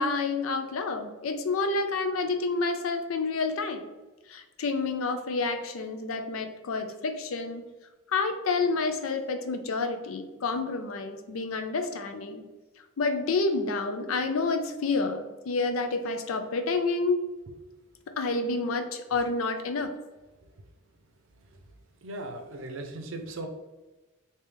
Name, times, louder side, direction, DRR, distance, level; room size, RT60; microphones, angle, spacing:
voice 1, 0.0-3.9 4.3-7.7 8.1-12.4 13.0-17.3 18.2-19.9, left 3 dB, 80° left, 7 dB, 0.5 m, -29 dB
voice 2, 22.0-23.5, right 2 dB, 70° right, 5 dB, 0.6 m, -37 dB
3.3 x 2.8 x 3.3 m, 1.2 s
head